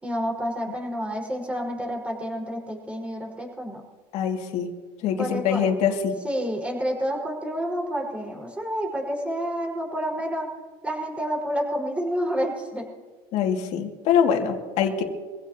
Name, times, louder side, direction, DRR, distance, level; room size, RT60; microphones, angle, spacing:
voice 1, 0.0-3.8 5.2-5.7 6.2-10.5 10.8-12.9, equal, 10° right, -1 dB, 5.3 m, -29 dB
voice 2, 4.1-4.7 5.0-5.9 13.3-15.0, left 8 dB, 65° left, 3 dB, 2.5 m, -23 dB
25.0 x 16.5 x 3.0 m, 1.4 s
supercardioid pair, 105°, 12 cm